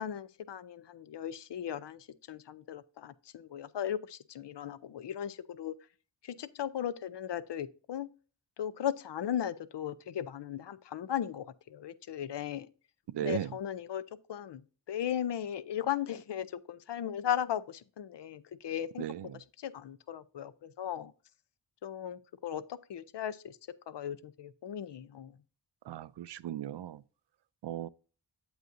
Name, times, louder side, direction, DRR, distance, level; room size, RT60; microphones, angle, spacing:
voice 1, 0.0-5.8 6.2-8.1 8.6-12.7 13.2-14.6 14.9-19.1 19.3-21.1 21.8-23.6 23.9-25.3, left 10 dB, 70° left, 0.6 m, -37 dB
voice 2, 13.1-13.5 19.0-19.1 25.9-27.0 27.6-27.9, right 11 dB, 65° right, 0.5 m, -36 dB
8.0 x 7.8 x 2.6 m
cardioid pair, 55°, 44 cm